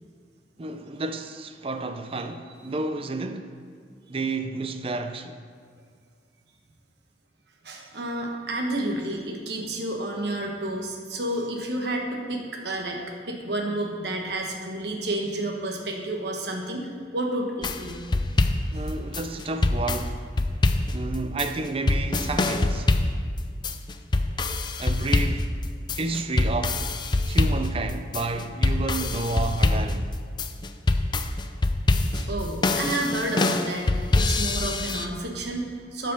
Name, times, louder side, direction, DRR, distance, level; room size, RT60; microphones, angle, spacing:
voice 1, 0.6-3.6 4.1-5.4 18.7-20.2 20.9-22.9 24.8-25.5 26.0-26.8 27.2-30.1, right 3 dB, 35° right, 0.5 m, -31 dB
voice 2, 7.6-18.1 32.1-36.1, right 1 dB, 70° right, 1.2 m, -30 dB
sound 1, 17.6-35.1, left 2 dB, 25° left, 0.4 m, -25 dB
9.0 x 5.3 x 6.7 m
head